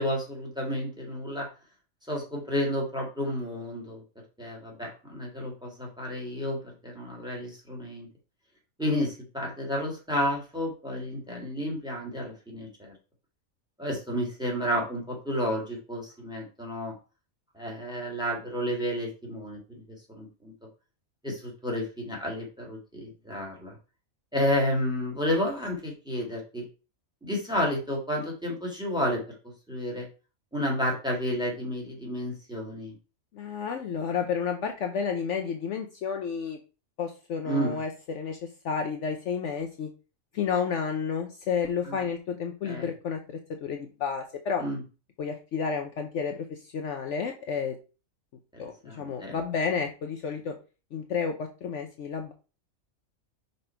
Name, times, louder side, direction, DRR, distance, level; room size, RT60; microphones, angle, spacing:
voice 1, 0.0-1.5 2.1-4.0 4.4-8.1 8.8-13.0 13.8-16.9 17.6-20.5 21.2-23.8 24.3-26.6 27.2-30.1 30.5-32.9 37.5-37.8 41.9-42.0 42.6-42.9 44.6-44.8 48.5-49.4, equal, 5° right, -1 dB, 1.9 m, -31 dB
voice 2, 33.3-36.6 37.0-39.9 40.3-43.2 43.6-44.6 45.2-47.8 48.6-50.5 50.9-52.3, left 6 dB, 65° left, 4 dB, 0.9 m, -31 dB
5.4 x 4.0 x 4.4 m, 0.33 s
omnidirectional pair, 1.4 m